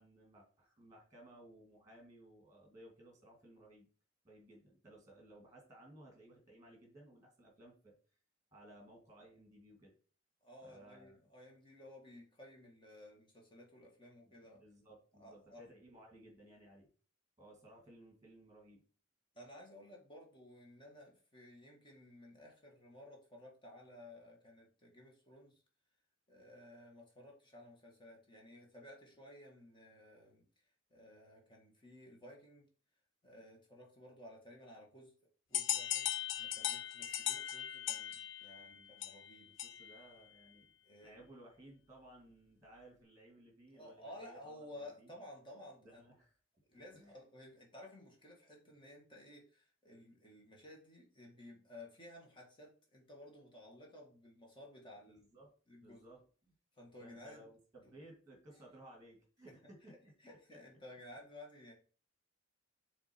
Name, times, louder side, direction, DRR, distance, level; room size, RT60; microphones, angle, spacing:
voice 1, 0.0-3.9 4.2-7.9 8.5-9.9 10.6-11.2 14.5-16.9 17.4-18.8 38.6-38.9 39.5-40.7 41.0-45.1 45.8-46.3 46.9-47.2 55.0-55.5 55.8-56.5 57.0-60.1, right 1 dB, 15° right, 1 dB, 2.2 m, -59 dB
voice 2, 10.4-14.6 15.2-15.6 19.3-25.6 26.3-30.6 30.9-32.7 33.2-35.1 35.5-36.1 36.4-39.5 40.8-41.2 43.7-46.0 46.7-55.2 55.7-56.0 56.8-57.4 58.5-58.6 59.5-59.6 59.8-61.7, left 1 dB, 25° left, 0 dB, 1.9 m, -55 dB
sound 1, 35.5-40.1, left 11 dB, 65° left, 0.5 m, -39 dB
6.8 x 3.6 x 4.4 m, 0.40 s
head